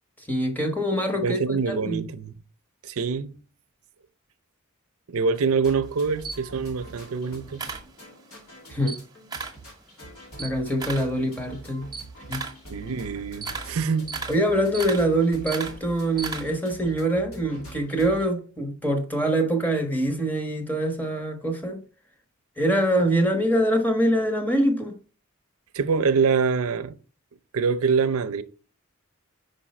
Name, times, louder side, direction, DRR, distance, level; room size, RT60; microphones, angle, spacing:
voice 1, 0.2-2.0 8.7-9.0 10.4-11.9 12.3-12.4 14.3-21.8 22.6-24.9, right 1 dB, 10° left, 1.1 m, -24 dB
voice 2, 1.1-2.4 2.8-3.4 5.1-7.6 12.7-14.1 25.7-27.0 27.5-28.4, right 5 dB, 85° right, 0.6 m, -25 dB
sound 1, 5.3-18.3, right 1 dB, 85° left, 2.8 m, -44 dB
Camera, 5.8-8.4 8.7-9.7 10.0-16.8, right 4 dB, 20° right, 0.9 m, -36 dB
5.3 x 5.0 x 4.2 m
head